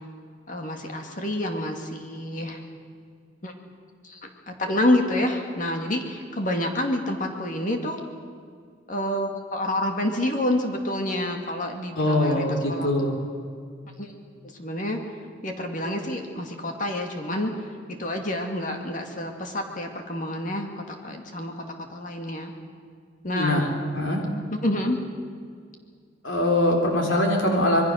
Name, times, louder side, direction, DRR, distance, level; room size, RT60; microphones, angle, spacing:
voice 1, 0.5-2.6 3.4-3.5 4.0-4.2 4.5-8.0 8.9-12.9 14.0-14.1 14.6-15.0 15.4-21.5 21.9-22.5 23.2-23.7 24.6-25.0 27.0-27.2, left 1 dB, 45° left, 3 dB, 2.3 m, -28 dB
voice 2, 12.0-13.2 23.3-23.7 23.9-24.2 26.2-27.8, left 1 dB, 90° left, 1 dB, 3.8 m, -22 dB
26.5 x 22.0 x 6.5 m, 2.1 s
head